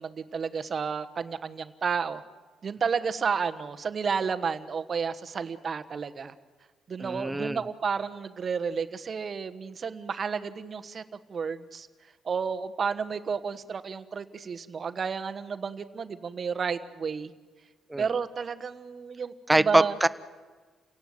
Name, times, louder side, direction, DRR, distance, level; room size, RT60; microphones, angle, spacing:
voice 1, 0.0-2.2 2.6-6.3 6.9-11.0 11.3-11.9 12.2-17.3 18.0-19.9, right 6 dB, 45° right, 11 dB, 1.3 m, -31 dB
voice 2, 7.0-7.6 17.9-18.1 19.5-20.1, right 2 dB, 10° right, 14 dB, 0.9 m, -23 dB
29.5 x 17.5 x 7.8 m, 1.4 s
cardioid pair, 90°, 0 cm